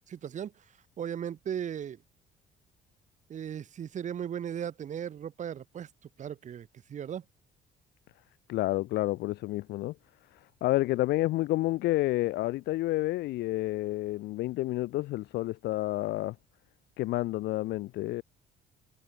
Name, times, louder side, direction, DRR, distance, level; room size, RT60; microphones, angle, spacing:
voice 1, 0.1-0.6 1.0-2.0 3.3-5.9 6.2-7.2, right 9 dB, 45° right, 1.7 m, -37 dB
voice 2, 8.5-9.9 10.6-16.4 17.0-18.2, left 17 dB, 80° left, 2.3 m, -29 dB
cardioid pair, 110°, 17 cm